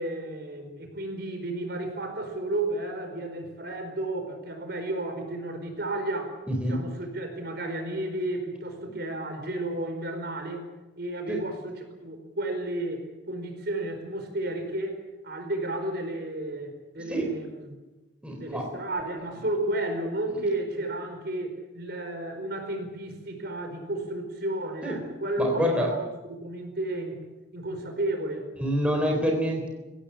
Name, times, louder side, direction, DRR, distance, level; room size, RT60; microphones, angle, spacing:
voice 1, 0.0-6.4 6.7-10.6 11.0-11.8 12.0-15.0 15.2-17.7 18.4-25.9 26.3-28.5, right 1 dB, 55° right, 5 dB, 5.0 m, -32 dB
voice 2, 6.5-6.8 11.3-11.4 17.1-17.3 18.2-18.7 24.8-25.0 25.4-25.9 28.6-29.7, equal, 5° right, 1 dB, 3.9 m, -27 dB
23.5 x 17.0 x 8.7 m, 1.1 s
head